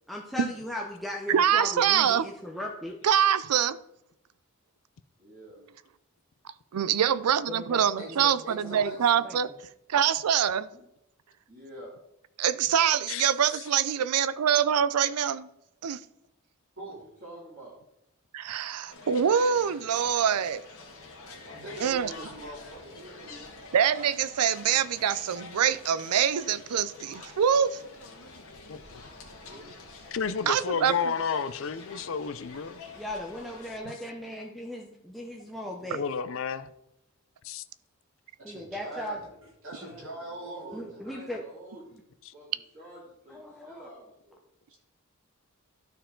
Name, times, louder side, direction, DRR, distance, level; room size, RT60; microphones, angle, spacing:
voice 1, 0.1-3.0 7.5-8.3 8.7-8.8 9.2-9.4 32.9-36.0 38.4-39.2 40.7-41.4 43.3-43.9, left 1 dB, ahead, 0.6 m, -37 dB
voice 2, 1.3-2.2 3.0-3.8 6.7-9.5 9.9-10.7 12.4-15.5 15.8-16.0 18.3-20.6 21.8-22.1 23.7-27.8 30.5-31.1, right 8 dB, 90° right, 0.4 m, -25 dB
voice 3, 5.2-5.6 10.7-10.8 11.5-11.9 17.2-17.8 38.8-39.2 39.7-42.0 42.3-42.5 42.7-44.4, right 1 dB, 35° right, 2.4 m, -48 dB
voice 4, 8.4-9.2 16.8-17.0 21.4-23.5 29.1-29.7 38.4-39.3 39.6-41.0, right 1 dB, 60° right, 3.0 m, -42 dB
sound 1, 18.9-33.8, left 3 dB, 75° left, 1.6 m, -47 dB
voice 5, 28.7-29.1 30.1-32.8 35.9-36.7 37.4-37.6, left 6 dB, 60° left, 0.4 m, -31 dB
12.5 x 4.5 x 3.8 m
head